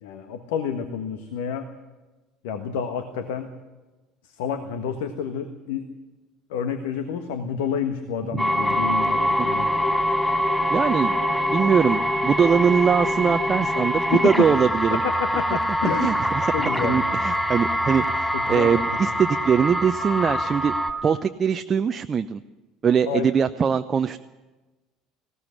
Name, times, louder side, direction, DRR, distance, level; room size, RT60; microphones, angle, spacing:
voice 1, 0.0-1.7 2.4-3.5 4.2-5.9 6.5-9.7 14.1-14.3 14.9-16.1 16.5-17.1 18.3-19.1 23.0-23.3, left 7 dB, 65° left, 8 dB, 1.4 m, -29 dB
sound 1, 8.4-20.9, equal, 5° left, 4.2 m, -24 dB
voice 2, 10.7-11.2 11.5-15.0 15.5-15.6 16.0-16.5 16.8-20.7 21.0-22.4 22.8-24.2, right 6 dB, 30° right, 8 dB, 0.7 m, -22 dB
20.0 x 17.0 x 9.8 m, 1.2 s
figure-of-eight pair, 60°, 0 cm